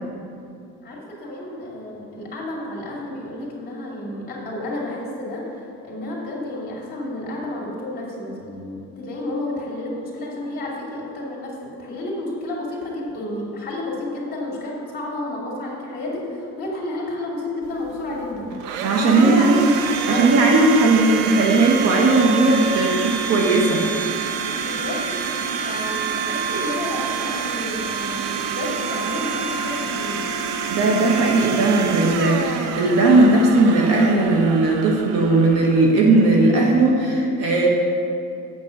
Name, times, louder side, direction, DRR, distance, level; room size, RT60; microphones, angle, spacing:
voice 1, 0.8-19.7 20.1-20.3 24.6-25.1 25.6-30.3, left 1 dB, 30° left, -4 dB, 2.6 m, -31 dB
Domestic sounds home sounds, 17.6-36.5, right 6 dB, 70° right, 0.8 m, -27 dB
voice 2, 18.8-19.6 20.1-23.9 30.7-37.7, right 2 dB, 50° right, 0 dB, 1.2 m, -17 dB
8.4 x 6.1 x 6.5 m, 2.6 s
cardioid pair, 150°, 32 cm